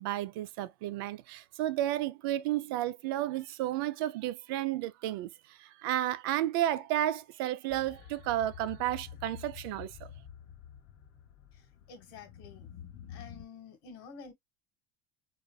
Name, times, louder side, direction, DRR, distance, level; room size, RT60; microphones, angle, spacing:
voice 1, 0.0-10.1, right 13 dB, 80° right, 0.4 m, -32 dB
sound 1, 7.7-13.4, left 8 dB, 45° left, 1.0 m, -49 dB
voice 2, 11.5-12.7 13.1-14.3, left 5 dB, 80° left, 1.4 m, -50 dB
4.1 x 2.5 x 2.2 m
cardioid pair, 160°, 12 cm